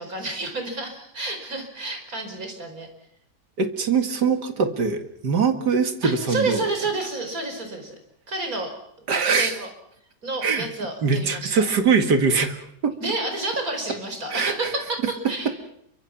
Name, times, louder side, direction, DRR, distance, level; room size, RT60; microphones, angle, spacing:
voice 1, 0.0-2.9 6.0-8.0 8.3-8.7 9.2-9.7 10.2-11.6 13.0-15.5, right 2 dB, 55° right, 5 dB, 5.3 m, -30 dB
voice 2, 3.6-6.6 9.1-9.5 10.4-10.7 11.0-12.9 14.3-14.5, right 5 dB, 80° right, 7 dB, 2.6 m, -22 dB
29.0 x 24.0 x 5.9 m, 0.74 s
omnidirectional pair, 1.8 m